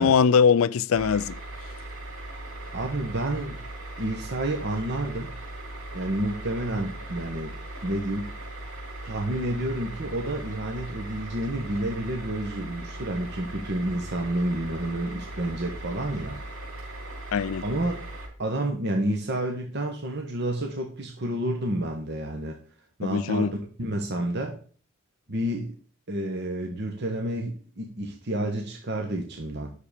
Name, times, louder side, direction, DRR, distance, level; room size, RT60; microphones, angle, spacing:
voice 1, 0.0-1.4 17.3-17.6 23.0-23.5, left 6 dB, 80° left, 0.4 m, -21 dB
sound 1, 0.9-18.3, right 1 dB, 85° right, 5.2 m, -39 dB
voice 2, 2.7-3.6 4.0-5.3 5.9-7.5 7.8-8.3 9.0-16.4 17.6-18.0 18.4-22.6 23.0-23.5 23.8-24.6 25.3-25.7 26.1-29.7, right 1 dB, 55° right, 1.3 m, -29 dB
9.8 x 6.8 x 4.9 m
head